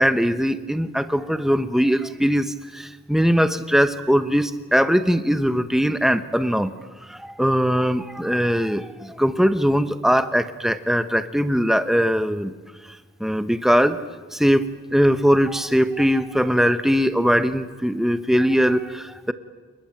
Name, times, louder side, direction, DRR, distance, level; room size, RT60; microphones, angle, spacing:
voice 1, 0.0-6.7 7.0-12.5 13.2-14.0 14.3-19.3, equal, ahead, 10 dB, 0.9 m, -20 dB
29.5 x 20.5 x 9.1 m, 1.3 s
head